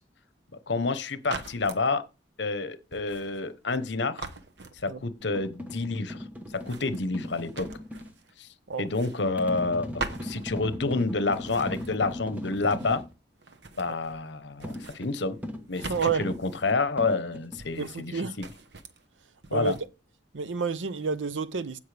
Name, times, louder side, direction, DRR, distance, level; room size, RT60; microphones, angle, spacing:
voice 1, 0.7-2.0 2.4-4.3 4.8-6.2 6.5-7.7 8.4-8.5 8.8-13.0 13.8-15.4 15.7-15.8 16.2-18.5 19.5-19.8, left 3 dB, 65° left, 1.0 m, -29 dB
sound 1, 1.2-1.9 2.9-3.9 4.2-5.2 6.5-8.4 8.7-9.7 10.0-11.0 11.3-13.1 13.4-14.3 14.5-16.7 17.6-18.1 18.4-19.0 19.4-19.9, right 3 dB, 60° right, 1.1 m, -43 dB
sound 2, 5.2-8.1 9.4-13.1 14.6-17.6, left 1 dB, 10° right, 1.1 m, -38 dB
voice 2, 15.8-16.3 17.1-17.2 17.8-18.4 19.5-19.8 20.3-21.8, right 5 dB, 80° right, 0.7 m, -30 dB
16.0 x 5.6 x 3.4 m
head